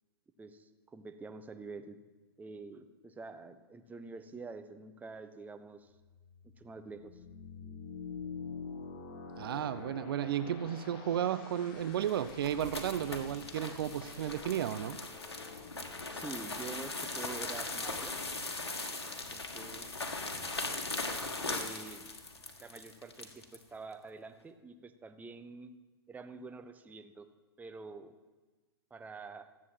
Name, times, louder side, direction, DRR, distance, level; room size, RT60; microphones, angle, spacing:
voice 1, 0.4-2.0 2.4-5.9 6.4-7.2 16.1-18.2 19.3-19.8 21.1-22.1 22.6-25.7 26.1-27.3 27.6-28.1 28.9-29.5, right 4 dB, 10° right, 7 dB, 1.0 m, -47 dB
sound 1, 5.9-18.5, left 5 dB, 45° left, 2.0 m, -48 dB
voice 2, 9.4-15.0, right 10 dB, 60° right, 13 dB, 0.6 m, -33 dB
sound 2, 11.9-23.6, left 3 dB, 85° left, 1.7 m, -39 dB
14.5 x 8.3 x 7.4 m, 1.2 s
hypercardioid pair, 110°, 13 cm